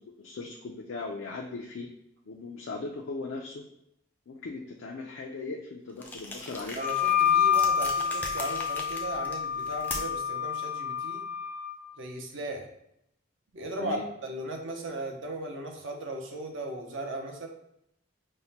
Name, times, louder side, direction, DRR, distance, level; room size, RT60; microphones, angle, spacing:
voice 1, 0.0-1.9 2.3-3.7 4.3-6.8 13.8-14.1, left 3 dB, 75° left, 1 dB, 0.4 m, -38 dB
sound 1, 6.0-10.3, left 2 dB, 10° left, 0.4 m, -40 dB
voice 2, 6.7-11.2 12.0-12.7 13.5-17.5, right 1 dB, 70° right, 2 dB, 0.6 m, -37 dB
Wind instrument woodwind instrument, 6.8-11.7, left 8 dB, 35° right, 0.7 m, -28 dB
5.3 x 2.1 x 2.8 m, 0.78 s
head